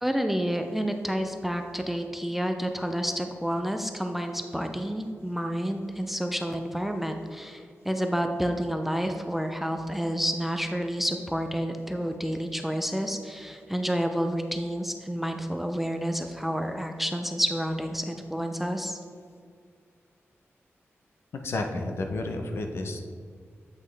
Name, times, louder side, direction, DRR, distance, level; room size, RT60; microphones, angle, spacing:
voice 1, 0.0-19.0, equal, 5° right, 5 dB, 0.3 m, -29 dB
voice 2, 21.3-23.1, left 2 dB, 60° left, 4 dB, 0.6 m, -31 dB
8.1 x 5.4 x 3.3 m, 2.1 s
wide cardioid pair, 180°, 5 cm